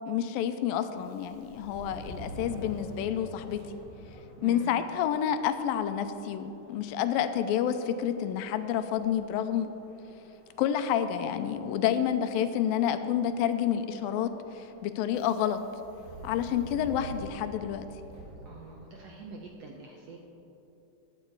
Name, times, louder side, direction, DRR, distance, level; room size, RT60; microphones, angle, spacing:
voice 1, 0.1-3.6 4.4-9.7 10.6-15.6 16.2-17.9, left 9 dB, 85° left, 9 dB, 2.4 m, -29 dB
Subway metro underground, 0.9-19.3, right 1 dB, 85° right, 4.6 m, -49 dB
voice 2, 4.4-4.7 18.4-20.2, right 4 dB, 70° right, 0 dB, 1.6 m, -45 dB
16.0 x 10.5 x 4.7 m, 2.9 s
omnidirectional pair, 4.1 m